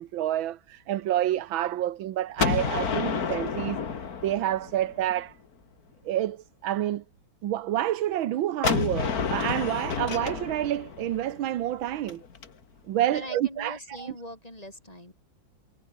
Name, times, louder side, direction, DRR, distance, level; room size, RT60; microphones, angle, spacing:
voice 1, 0.0-3.8 4.2-5.3 6.1-7.0 7.4-12.2 12.9-14.1, right 12 dB, 85° right, 1.7 m, -28 dB
Gunshot gunfire, 2.4-5.2 8.6-12.5, left 6 dB, 50° left, 2.3 m, -30 dB
voice 2, 13.0-15.1, left 1 dB, 20° left, 4.9 m, -42 dB
omnidirectional pair, 2.1 m